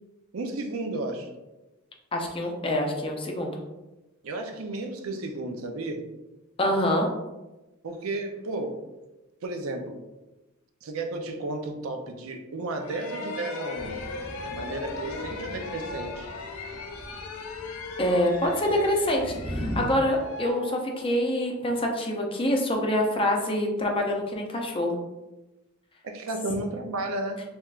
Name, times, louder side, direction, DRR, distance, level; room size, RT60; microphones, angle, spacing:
voice 1, 0.3-1.3 4.2-6.0 7.8-8.8 9.4-10.0 10.8-14.0 14.5-16.3 26.0-27.4, right 2 dB, 85° right, 4 dB, 0.5 m, -33 dB
voice 2, 2.1-3.6 6.6-7.1 18.0-25.0, left 1 dB, 25° left, 1 dB, 0.5 m, -26 dB
sound 1, 12.8-21.4, left 3 dB, 85° left, 0.4 m, -38 dB
Thunder / Rain, 13.7-19.8, equal, 35° right, 0.9 m, -39 dB
3.3 x 3.0 x 2.4 m, 1.0 s
head